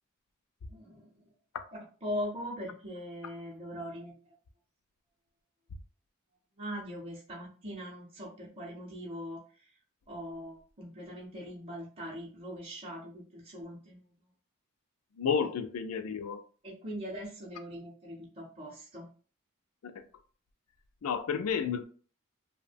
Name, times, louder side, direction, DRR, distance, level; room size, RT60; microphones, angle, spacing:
voice 1, 0.7-1.1 2.0-4.1 6.6-9.4 10.1-14.1 16.6-19.1, equal, 30° right, 0.6 m, -41 dB
voice 2, 15.2-16.4 19.8-20.0 21.0-21.8, left 6 dB, 85° left, 0.4 m, -31 dB
2.7 x 2.1 x 2.5 m
head